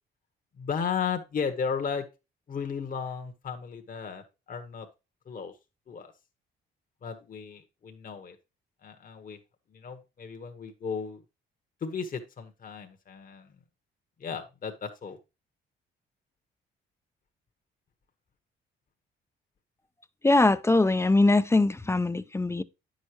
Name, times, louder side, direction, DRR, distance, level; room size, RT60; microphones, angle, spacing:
voice 1, 0.6-2.1 2.5-4.9 5.3-5.5 5.9-6.1 7.0-8.4 8.8-9.4 9.7-11.2 11.8-13.5 14.2-15.2, left 6 dB, 45° left, 1.2 m, -35 dB
voice 2, 20.2-22.6, left 2 dB, 15° left, 0.5 m, -22 dB
9.4 x 6.4 x 2.9 m
cardioid pair, 90°, 20 cm